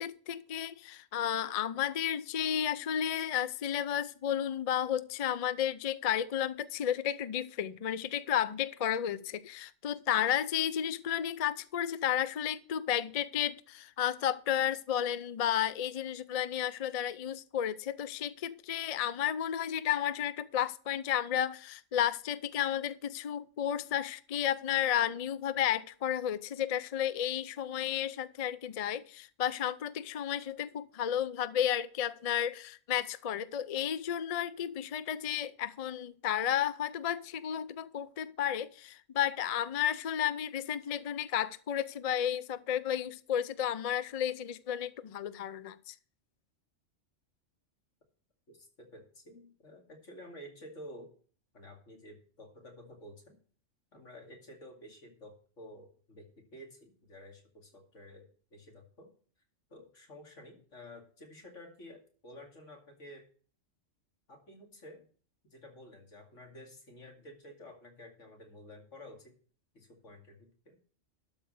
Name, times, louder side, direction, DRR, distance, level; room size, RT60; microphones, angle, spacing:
voice 1, 0.0-45.9, left 10 dB, 55° left, 0.4 m, -32 dB
voice 2, 48.5-51.1 51.5-53.4 53.9-59.1 59.7-63.3 64.3-65.1 65.5-69.3 69.7-70.8, left 1 dB, 75° left, 2.8 m, -51 dB
12.5 x 4.9 x 6.5 m
omnidirectional pair, 1.3 m